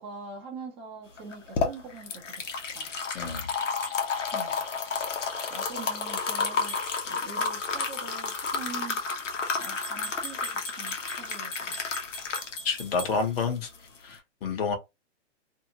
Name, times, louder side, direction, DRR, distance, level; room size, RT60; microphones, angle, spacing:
voice 1, 0.0-2.9 4.3-4.6 5.5-9.0 9.6-11.8, right 4 dB, 15° right, 0.8 m, -43 dB
sound 1, 1.2-14.2, left 5 dB, 85° left, 1.0 m, -31 dB
voice 2, 3.1-3.5 12.6-13.7 14.0-14.8, left 5 dB, 55° left, 1.2 m, -29 dB
sound 2, 3.8-4.0 6.7-6.9 9.6-13.2, left 1 dB, 30° left, 0.9 m, -41 dB
2.8 x 2.4 x 2.8 m
hypercardioid pair, 155°, 36 cm